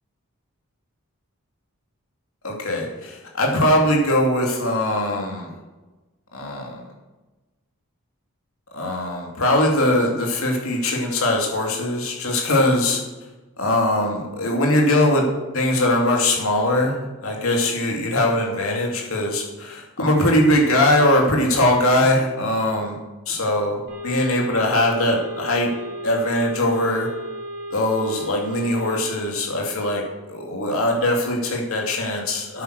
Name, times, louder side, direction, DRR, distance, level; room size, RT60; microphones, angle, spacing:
voice 1, 2.4-5.6 6.3-6.8 8.7-13.0 13.6-15.3 15.5-23.0 23.3-25.7 26.0-27.1 27.7-30.0 30.3-32.6, left 1 dB, 70° left, 0 dB, 2.7 m, -21 dB
sound 1, 23.9-29.0, equal, 50° right, 3.3 m, -34 dB
9.5 x 9.2 x 6.6 m, 1.1 s
head